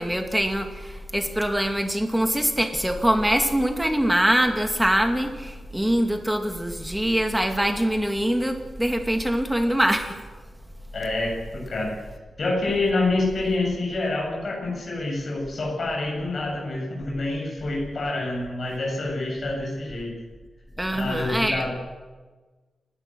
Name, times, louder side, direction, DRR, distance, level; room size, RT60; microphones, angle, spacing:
voice 1, 0.0-10.2 20.8-21.7, equal, 5° right, 5 dB, 2.3 m, -23 dB
voice 2, 10.9-11.3 11.7-11.9 12.4-20.1 20.9-21.7, left 2 dB, 50° left, -2 dB, 7.7 m, -27 dB
29.5 x 12.5 x 8.0 m, 1.3 s
wide cardioid pair, 145°, 0 cm